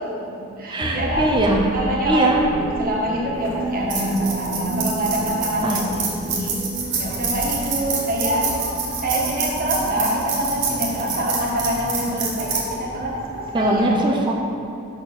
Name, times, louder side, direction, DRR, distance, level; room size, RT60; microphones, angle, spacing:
voice 1, 0.0-1.3 1.7-6.5 6.9-8.5 9.0-14.0, right 1 dB, 45° right, -3 dB, 1.3 m, -25 dB
voice 2, 0.7-1.7 2.0-2.4 5.6-5.8 13.5-14.3, right 1 dB, 20° right, 1 dB, 0.5 m, -21 dB
sound 1, 0.8-3.5, equal, 50° left, 0.8 m, -32 dB
sound 2, 2.2-13.4, right 2 dB, 5° right, 0.9 m, -35 dB
sound 3, 3.3-13.8, right 4 dB, 60° right, 1.4 m, -28 dB
6.2 x 4.3 x 5.9 m, 2.7 s
head